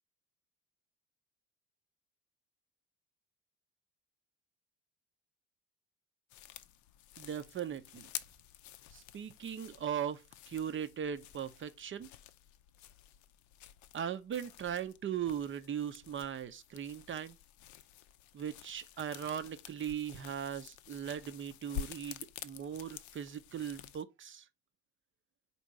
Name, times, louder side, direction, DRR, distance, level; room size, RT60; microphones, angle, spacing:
sound 1, 6.3-24.0, left 10 dB, 55° left, 0.5 m, -50 dB
voice 1, 7.2-8.1 8.9-12.1 13.9-17.4 18.3-24.5, right 9 dB, 35° right, 0.6 m, -39 dB
4.3 x 2.7 x 4.4 m
hypercardioid pair, 55°, 36 cm